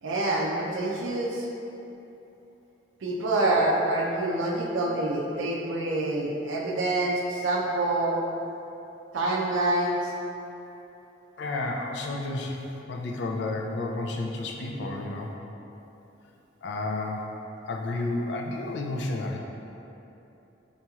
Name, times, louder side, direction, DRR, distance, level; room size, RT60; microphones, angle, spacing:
voice 1, 0.0-1.5 3.0-8.2 9.1-10.1, right 2 dB, 80° right, -2 dB, 0.4 m, -26 dB
voice 2, 11.4-12.6 12.9-15.3 16.6-17.3 17.6-19.4, left 2 dB, 65° left, 1 dB, 0.3 m, -31 dB
4.1 x 3.0 x 2.3 m, 3.0 s
head